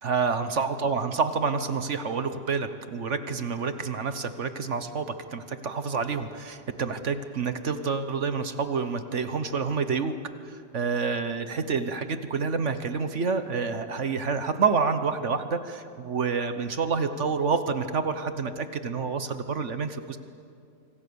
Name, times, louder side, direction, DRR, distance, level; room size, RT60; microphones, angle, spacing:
voice 1, 0.0-10.1 10.5-20.2, right 5 dB, 45° right, 10 dB, 1.2 m, -28 dB
26.0 x 25.0 x 7.0 m, 2.4 s
omnidirectional pair, 2.0 m